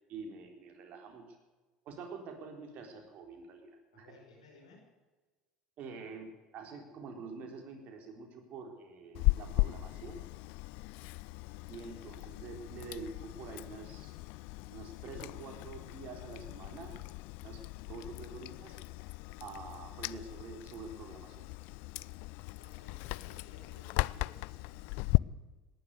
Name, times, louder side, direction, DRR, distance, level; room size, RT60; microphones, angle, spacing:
voice 1, 0.1-1.2 1.9-4.1 5.8-10.2 11.7-14.1 14.7-17.0 17.4-17.6 17.9-18.8 19.4-21.5, right 4 dB, 55° right, 4 dB, 4.0 m, -47 dB
voice 2, 3.9-4.9 11.5-12.4 22.5-25.1, left 3 dB, 90° left, 1 dB, 4.8 m, -59 dB
Chewing mastication, 9.1-25.2, left 24 dB, 65° left, 0.4 m, -37 dB
19.0 x 11.0 x 6.7 m, 1.3 s
hypercardioid pair, 75°, 3 cm